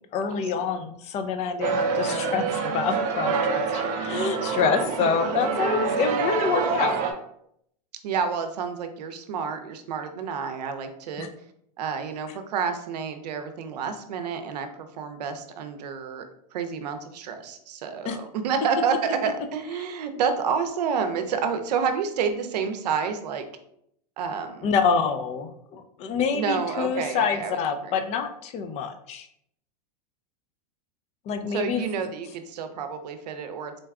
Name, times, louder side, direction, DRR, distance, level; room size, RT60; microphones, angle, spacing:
voice 1, 0.1-6.9 11.2-11.3 18.0-18.2 24.6-29.3 31.3-31.8, left 6 dB, 35° left, 7 dB, 0.4 m, -26 dB
sound 1, 1.6-7.1, right 5 dB, 40° right, 0.6 m, -26 dB
voice 2, 8.0-11.3 11.8-23.4 24.2-24.7 26.3-28.0 31.5-33.8, right 6 dB, 85° right, 7 dB, 0.6 m, -29 dB
3.9 x 2.3 x 3.6 m, 0.73 s
supercardioid pair, 130°, 20 cm